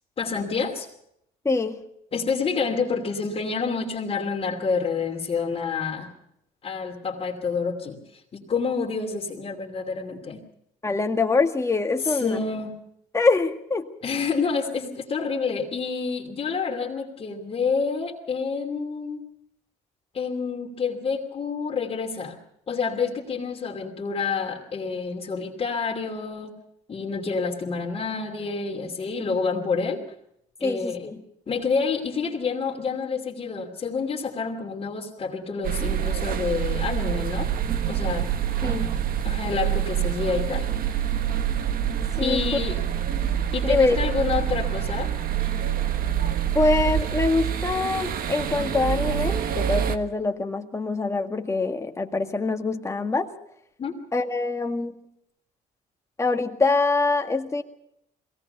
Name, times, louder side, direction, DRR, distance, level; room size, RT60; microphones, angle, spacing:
voice 1, 0.2-0.9 2.1-6.1 6.6-8.0 8.3-10.4 12.1-12.8 14.0-19.2 20.1-22.4 22.7-26.5 26.9-30.0 30.6-31.1 31.5-37.5 37.9-38.3 39.2-40.7 42.2-42.8 43.5-45.1 53.8-54.0, left 5 dB, 35° left, -2 dB, 2.9 m, -28 dB
voice 2, 1.5-1.8 10.8-12.4 13.1-13.9 30.6-31.2 38.6-39.0 42.2-42.4 43.7-44.1 46.5-53.3 54.1-54.9 56.2-57.6, left 3 dB, 15° left, 4 dB, 1.9 m, -24 dB
sound 1, 35.6-50.0, right 10 dB, 60° right, 1.4 m, -26 dB
22.0 x 18.0 x 6.8 m, 0.75 s
cardioid pair, 110°, 17 cm